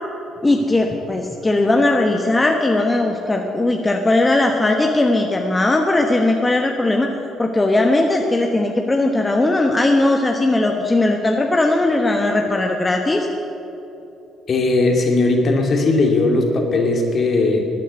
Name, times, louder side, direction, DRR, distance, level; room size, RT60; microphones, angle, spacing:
voice 1, 0.4-7.1 7.4-13.3, left 2 dB, 20° left, 2 dB, 1.2 m, -18 dB
voice 2, 14.5-17.6, left 2 dB, 50° left, 2 dB, 2.5 m, -18 dB
13.5 x 9.2 x 8.2 m, 2.9 s
supercardioid pair, 60°, 0 cm